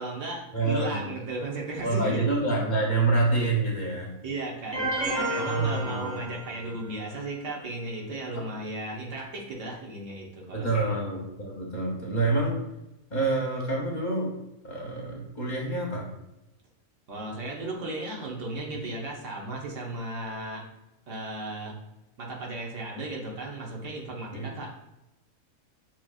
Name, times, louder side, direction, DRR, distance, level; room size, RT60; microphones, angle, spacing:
voice 1, 0.0-2.3 3.9-4.0 4.2-10.9 17.1-20.6 21.1-21.8 22.2-24.7, right 2 dB, 65° right, -1 dB, 1.2 m, -35 dB
voice 2, 0.5-1.1 1.8-4.1 5.4-6.2 6.6-6.7 8.3-8.4 10.5-12.6 13.1-14.3 14.6-16.1 24.3-24.5, right 3 dB, 40° left, -1 dB, 0.7 m, -27 dB
sound 1, 4.7-6.8, right 1 dB, 35° right, 0.4 m, -31 dB
6.3 x 2.9 x 2.4 m, 0.90 s
omnidirectional pair, 1.5 m